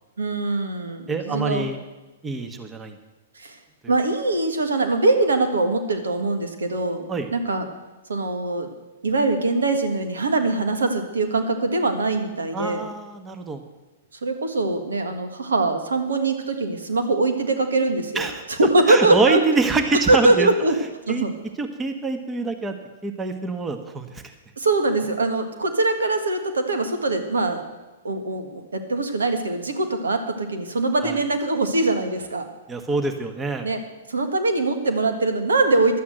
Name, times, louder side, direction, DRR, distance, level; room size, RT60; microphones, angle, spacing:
voice 1, 0.2-1.7 3.3-3.6 3.9-7.6 8.1-8.7 9.0-12.9 14.2-19.4 20.1-20.7 21.1-21.3 24.6-27.6 28.0-32.5 33.6-33.8 34.1-36.0, right 2 dB, 85° right, 6 dB, 1.6 m, -22 dB
voice 2, 1.1-1.8 2.2-2.9 7.1-7.3 12.5-13.6 18.1-18.4 18.9-20.5 21.1-21.2 21.6-22.8 23.0-24.2 31.0-31.2 32.7-33.7, right 4 dB, 15° right, 6 dB, 1.2 m, -25 dB
11.0 x 8.3 x 7.8 m, 1.1 s
hypercardioid pair, 120°, 0 cm